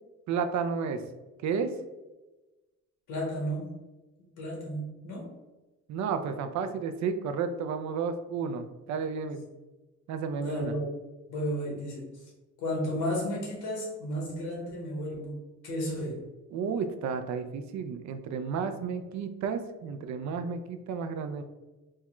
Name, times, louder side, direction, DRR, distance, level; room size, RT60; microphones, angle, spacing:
voice 1, 0.3-1.0 1.4-1.7 5.9-9.5 10.1-10.7 16.5-21.4, right 5 dB, 70° right, 8 dB, 0.4 m, -32 dB
voice 2, 3.1-3.7 4.2-5.3 10.4-10.9 11.3-12.3 12.6-16.2, equal, 90° left, -3 dB, 1.3 m, -33 dB
3.5 x 2.2 x 2.9 m, 1.1 s
cardioid pair, 90°, 30 cm